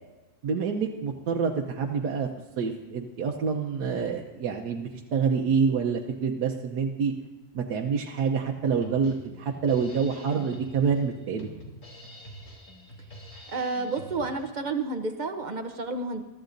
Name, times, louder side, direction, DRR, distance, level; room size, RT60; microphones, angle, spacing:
voice 1, 0.4-2.3 2.6-7.1 7.5-11.5, right 6 dB, 80° right, 1 dB, 1.4 m, -27 dB
Drum kit, 8.6-14.6, equal, 50° left, 3.0 m, -46 dB
voice 2, 13.5-16.2, right 3 dB, 40° right, 7 dB, 0.7 m, -30 dB
22.5 x 13.5 x 2.6 m, 1.2 s
omnidirectional pair, 1.7 m